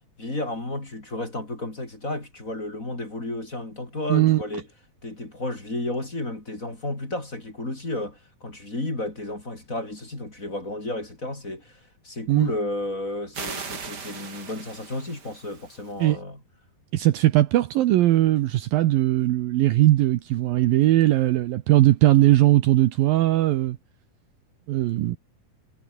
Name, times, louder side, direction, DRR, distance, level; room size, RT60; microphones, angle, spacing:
voice 1, 0.2-4.7 5.0-11.8 12.0-16.4, left 2 dB, 20° left, 4.6 m, -32 dB
voice 2, 4.1-4.4 12.3-12.5 16.0-16.2 16.9-23.8 24.7-25.2, right 15 dB, 70° right, 2.5 m, -19 dB
sound 1, 13.3-15.9, right 5 dB, 30° right, 2.4 m, -38 dB
omnidirectional pair, 4.7 m